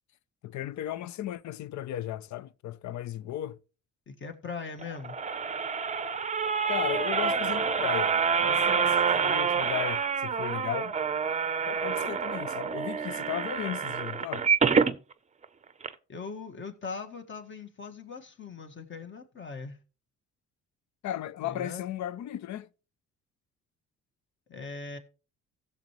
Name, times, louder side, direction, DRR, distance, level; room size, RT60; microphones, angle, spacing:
voice 1, 0.4-3.6 6.7-10.9 11.7-14.5 21.0-22.7, left 12 dB, 70° left, 0.5 m, -36 dB
voice 2, 4.1-5.2 16.1-19.8 21.4-21.9 24.5-25.0, left 4 dB, 40° left, 1.7 m, -40 dB
sound 1, 4.8-15.0 15.4-15.5 15.8-15.9, right 6 dB, 25° right, 0.6 m, -27 dB
16.0 x 7.0 x 3.1 m
cardioid pair, 90°, 30 cm